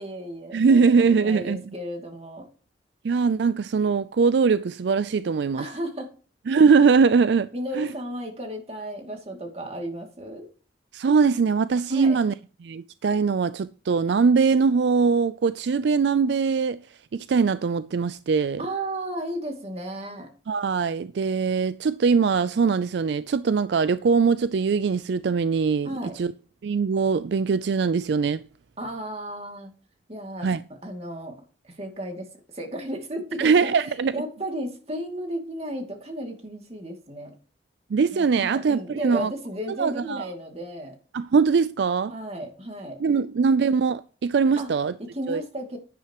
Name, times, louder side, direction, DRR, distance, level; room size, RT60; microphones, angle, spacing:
voice 1, 0.0-2.5 5.6-6.1 7.5-10.5 11.9-12.2 18.6-20.3 25.8-26.2 28.8-29.7 30.1-30.5 30.8-32.3 32.5-37.4 38.1-41.0 42.1-43.0 44.6-45.8, right 1 dB, 35° right, 2.4 m, -34 dB
voice 2, 0.5-1.6 3.0-5.6 6.5-7.5 7.7-7.9 10.9-12.3 12.6-16.8 17.1-18.6 20.5-26.3 26.6-28.4 30.4-30.6 33.4-34.1 37.9-39.3 39.7-40.3 41.1-42.1 43.0-44.9 45.3-45.4, right 5 dB, 70° right, 0.4 m, -22 dB
10.5 x 10.5 x 3.0 m
head